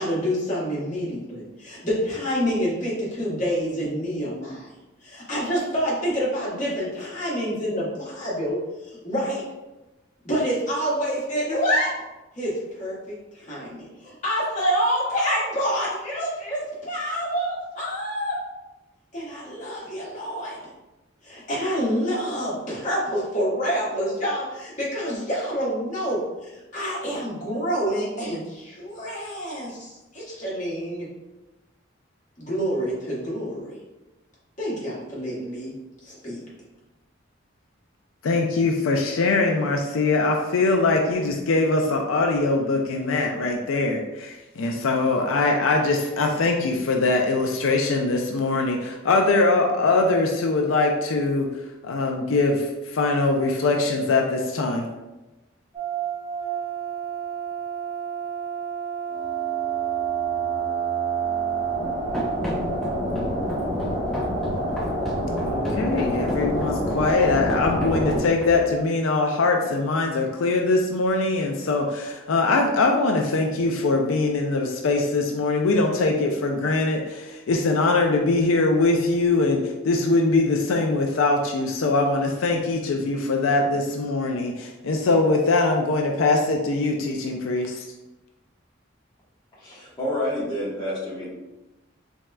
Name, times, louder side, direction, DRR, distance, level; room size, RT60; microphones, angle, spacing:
voice 1, 0.0-4.7 5.0-9.4 10.2-12.0 12.3-18.4 19.1-20.6 21.2-31.1 32.4-33.8 34.6-35.7 36.0-36.4, equal, 40° left, -7 dB, 1.4 m, -27 dB
voice 2, 38.2-51.5 51.8-54.9 65.4-87.9, left 3 dB, 85° left, 2 dB, 0.4 m, -22 dB
sound 1, 55.7-68.2, right 3 dB, 20° right, 1.3 m, -27 dB
Run, 62.1-68.8, left 1 dB, ahead, 0.6 m, -33 dB
voice 3, 89.5-91.3, left 1 dB, 20° left, -8 dB, 1.1 m, -29 dB
4.1 x 3.6 x 2.2 m, 1.0 s
head